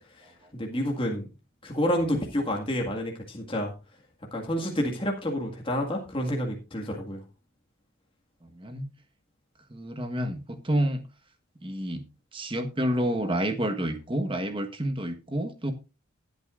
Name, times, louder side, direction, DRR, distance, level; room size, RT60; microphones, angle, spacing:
voice 1, 0.5-1.3 1.6-3.7 4.3-7.2, equal, 25° left, 0 dB, 1.9 m, -29 dB
voice 2, 8.5-8.9 9.7-11.1 11.6-12.1 12.3-15.7, right 1 dB, 25° right, 7 dB, 1.3 m, -29 dB
19.5 x 8.0 x 2.5 m, 0.28 s
head